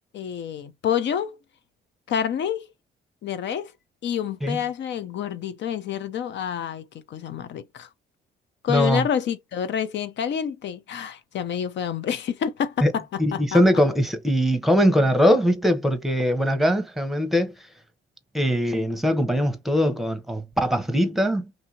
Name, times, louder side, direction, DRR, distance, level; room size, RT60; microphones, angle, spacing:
voice 1, 0.1-1.4 2.1-2.7 3.2-3.7 4.0-7.9 8.6-13.6, left 8 dB, 65° left, 0.7 m, -28 dB
voice 2, 8.7-9.0 12.8-12.9 13.2-17.5 18.3-21.7, equal, ahead, 0.9 m, -21 dB
2.8 x 2.7 x 2.7 m
cardioid pair, 90°, 20 cm